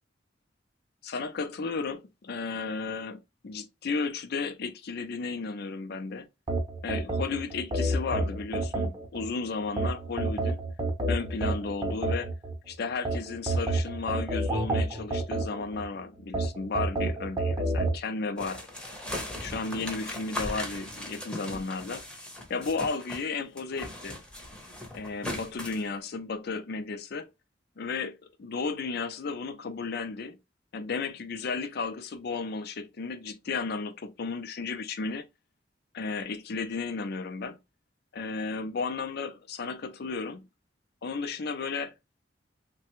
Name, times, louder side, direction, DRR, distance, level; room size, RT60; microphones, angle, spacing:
voice 1, 1.0-6.3 6.8-10.6 11.1-12.3 12.7-18.6 19.4-22.0 22.5-24.2 24.9-27.3 27.8-30.4 30.7-35.2 35.9-37.6 38.1-40.5 41.0-41.9, left 4 dB, 60° left, 0.5 m, -34 dB
sound 1, 6.5-9.3 9.8-12.5 13.1-15.8 16.3-18.0, right 2 dB, 25° right, 0.8 m, -29 dB
sound 2, 18.4-23.3 23.6-25.9, left 1 dB, 5° left, 0.8 m, -38 dB
3.3 x 2.2 x 3.0 m
head